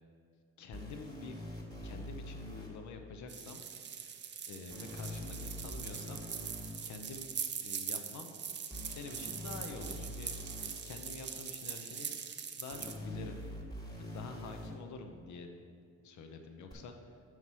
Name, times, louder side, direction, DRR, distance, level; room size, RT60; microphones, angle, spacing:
voice 1, 0.6-3.6 4.5-6.2 6.8-7.3 7.6-8.4 8.9-10.3 10.8-12.1 12.5-13.4 14.0-15.5 16.0-17.2, left 4 dB, 70° left, 5 dB, 0.7 m, -47 dB
sound 1, 0.7-2.7 4.7-6.7 8.7-10.7 12.7-14.7 16.7-16.8, equal, 10° left, 1.5 m, -44 dB
sound 2, 3.3-13.0, right 7 dB, 35° right, 0.5 m, -42 dB
5.8 x 4.7 x 5.5 m, 2.3 s
cardioid pair, 90°, 30 cm